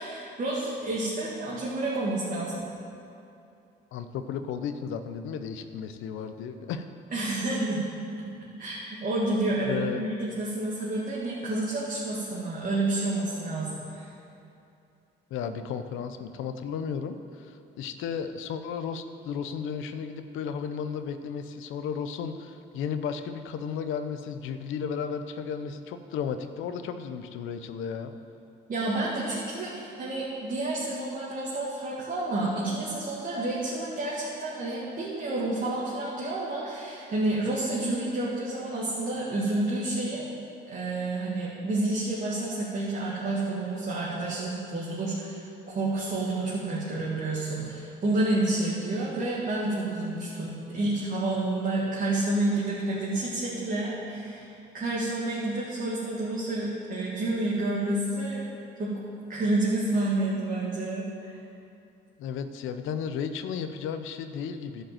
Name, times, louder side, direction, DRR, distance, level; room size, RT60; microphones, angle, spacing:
voice 1, 0.0-2.6 7.1-7.9 8.2-8.3 8.6-14.1 28.7-40.3 40.7-58.4 58.8-58.9 59.3-61.4, right 2 dB, 45° right, -7 dB, 2.0 m, -29 dB
voice 2, 3.9-6.9 9.7-10.0 15.3-28.1 62.2-64.8, left 7 dB, 90° left, 9 dB, 0.6 m, -34 dB
11.0 x 5.3 x 7.6 m, 2.7 s
cardioid pair, 90°, 20 cm